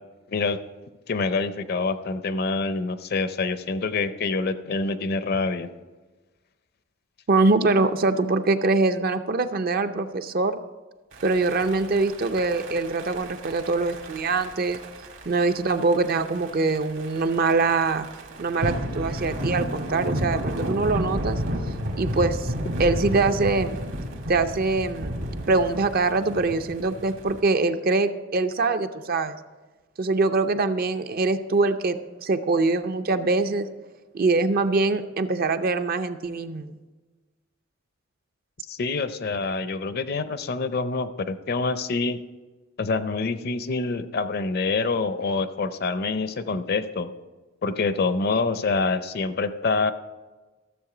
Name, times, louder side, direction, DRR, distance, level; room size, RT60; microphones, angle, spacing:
voice 1, 1.1-5.7 38.7-42.2 42.8-47.1 47.6-49.9, left 3 dB, 50° left, 12 dB, 0.5 m, -26 dB
voice 2, 7.3-10.6 11.2-14.8 15.3-18.1 18.4-21.4 22.0-22.5 22.8-23.8 24.3-25.1 25.5-29.4 30.0-33.7 34.1-36.8, right 3 dB, 45° right, 9 dB, 0.5 m, -23 dB
sound 1, 11.1-27.4, equal, 65° right, 1.8 m, -32 dB
13.5 x 7.1 x 4.9 m, 1.2 s
head